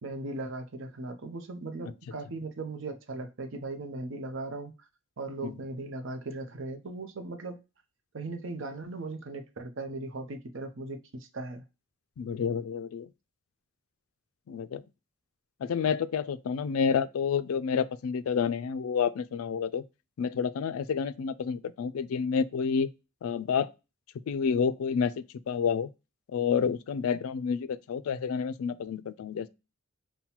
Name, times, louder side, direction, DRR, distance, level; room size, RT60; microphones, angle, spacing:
voice 1, 0.0-4.7 5.2-7.6 8.1-11.7, right 2 dB, 60° right, 0.6 m, -38 dB
voice 2, 12.2-13.1 14.5-14.8 15.6-19.8 20.2-22.9 23.2-23.7 24.3-25.9 26.3-29.5, left 6 dB, 80° left, 0.3 m, -29 dB
5.5 x 2.2 x 2.9 m
head